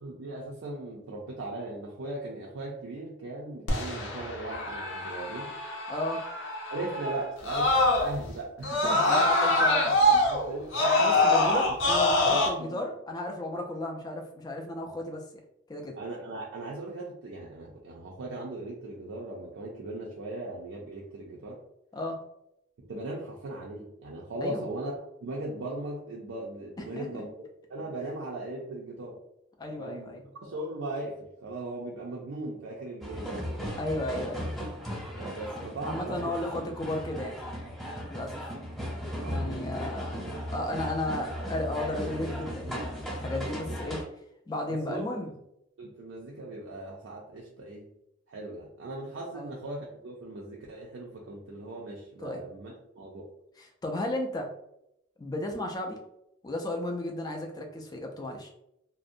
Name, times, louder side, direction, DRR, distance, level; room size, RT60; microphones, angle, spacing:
voice 1, 0.0-5.5 6.7-9.3 9.8-11.1 11.9-12.9 16.0-21.6 22.8-27.3 27.7-29.2 29.8-30.1 30.4-33.6 35.2-36.3 39.2-39.4 44.7-45.0 45.8-47.9 48.3-53.3, right 2 dB, 75° right, -3 dB, 0.4 m, -38 dB
Screaming, 3.7-8.3 8.6-12.5, left 1 dB, 70° left, 0.6 m, -25 dB
voice 2, 5.9-6.3 8.8-9.9 10.1-10.3 11.0-15.2 15.7-16.0 21.9-22.2 24.4-24.6 26.8-27.2 29.6-30.3 33.8-34.5 35.8-37.4 38.1-38.5 39.2-40.2 40.5-44.0 44.5-45.3 49.3-49.5 52.2-52.4 53.6-54.5 55.2-56.0 56.4-58.5, left 1 dB, 20° left, 2 dB, 0.3 m, -34 dB
sound 1, 33.0-44.0, equal, 5° left, 0.8 m, -36 dB
2.5 x 2.0 x 2.5 m, 0.81 s
head